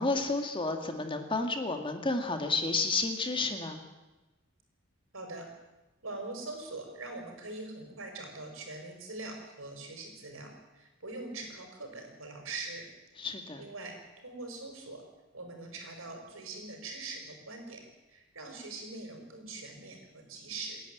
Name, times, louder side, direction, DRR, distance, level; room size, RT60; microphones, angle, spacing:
voice 1, 0.0-3.8 13.2-13.6, left 3 dB, 25° left, 5 dB, 1.9 m, -31 dB
voice 2, 5.1-5.5 6.0-12.8 13.6-14.0 14.2-15.0 15.3-17.8 18.1-20.8, right 3 dB, 70° right, 3 dB, 5.6 m, -42 dB
29.0 x 11.0 x 9.2 m, 1.1 s
head